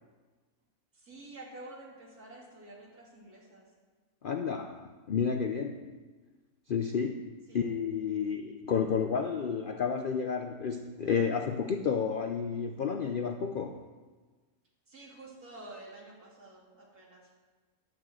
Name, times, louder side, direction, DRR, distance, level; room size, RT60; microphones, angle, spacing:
voice 1, 0.9-3.7 7.5-7.6 14.9-17.3, right 2 dB, 80° right, -4 dB, 3.2 m, -49 dB
voice 2, 4.2-6.0 6.7-13.9, left 6 dB, 65° left, 6 dB, 0.5 m, -31 dB
12.0 x 6.2 x 7.6 m, 1.4 s
omnidirectional pair, 1.6 m